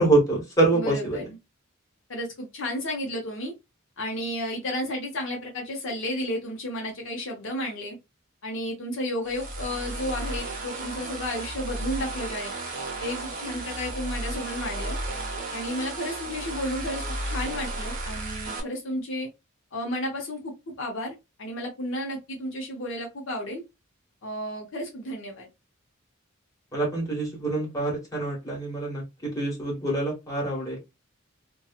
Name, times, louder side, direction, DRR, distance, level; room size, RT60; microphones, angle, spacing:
voice 1, 0.0-1.2 26.7-30.8, right 2 dB, 15° left, -3 dB, 1.3 m, -25 dB
voice 2, 0.7-1.4 2.1-3.5 4.0-8.0 8.4-12.5 13.0-15.0 15.5-19.3 19.7-23.6 24.2-25.5, left 1 dB, 65° left, 0 dB, 0.7 m, -32 dB
sound 1, 9.2-18.6, right 2 dB, 40° right, 0.8 m, -33 dB
2.8 x 2.3 x 2.3 m, 0.23 s
head